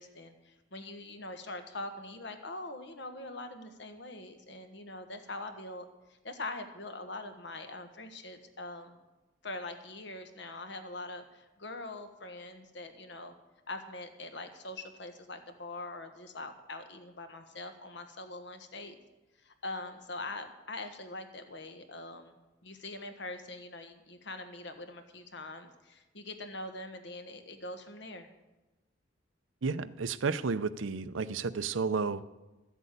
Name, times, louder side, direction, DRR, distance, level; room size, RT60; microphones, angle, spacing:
voice 1, 0.0-9.0 9.4-13.3 13.7-18.9 19.4-28.3, left 2 dB, 65° left, 7 dB, 1.4 m, -43 dB
voice 2, 29.6-32.2, right 4 dB, 85° right, 14 dB, 0.6 m, -32 dB
13.0 x 8.2 x 8.5 m, 1.1 s
head